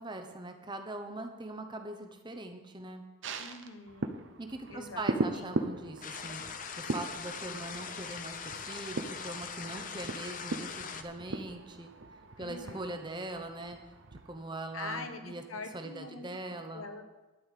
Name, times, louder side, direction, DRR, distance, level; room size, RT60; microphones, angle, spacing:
voice 1, 0.0-3.0 4.4-11.9 12.4-13.8 14.2-15.4 15.7-16.9, right 2 dB, 20° right, 6 dB, 0.9 m, -41 dB
sound 1, 3.2-14.9 15.2-15.3, right 2 dB, 60° right, 0.8 m, -39 dB
voice 2, 3.4-4.2 4.7-5.5 12.4-12.9 14.7-16.4 16.7-17.0, left 3 dB, 80° left, 7 dB, 1.2 m, -44 dB
sound 2, 6.0-11.0, left 6 dB, 40° left, 0.7 m, -41 dB
12.0 x 5.6 x 8.4 m, 1.2 s
head